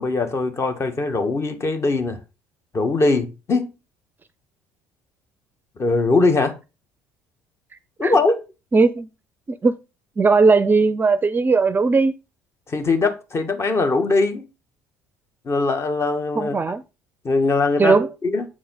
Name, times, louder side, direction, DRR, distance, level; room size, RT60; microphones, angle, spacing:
voice 1, 0.0-2.2 2.7-3.7 5.8-6.6 8.0-8.4 12.7-14.4 15.4-16.6 17.2-18.0 18.2-18.5, left 3 dB, 35° left, 1.5 m, -21 dB
voice 2, 8.7-9.1 9.5-9.7 10.2-12.1 16.3-16.8 17.8-18.1, right 4 dB, 25° right, 0.5 m, -17 dB
7.6 x 4.7 x 3.9 m
hypercardioid pair, 60°, 8 cm